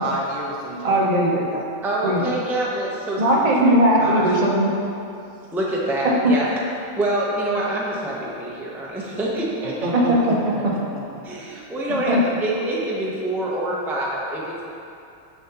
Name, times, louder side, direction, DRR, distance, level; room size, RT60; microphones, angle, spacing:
voice 1, 0.0-1.1 3.3-3.4 9.6-11.0, right 2 dB, 70° right, -2 dB, 1.2 m, -30 dB
voice 2, 0.8-1.6 2.0-2.2 3.2-4.7 6.0-6.3 9.9-10.4 12.1-12.2, right 1 dB, 35° right, -3 dB, 0.9 m, -18 dB
voice 3, 1.8-3.5 4.0-4.4 5.5-6.6 7.0-10.1 10.6-10.7 11.2-14.6, right 1 dB, ahead, -4 dB, 0.6 m, -26 dB
7.0 x 6.9 x 2.9 m, 2.7 s
omnidirectional pair, 1.3 m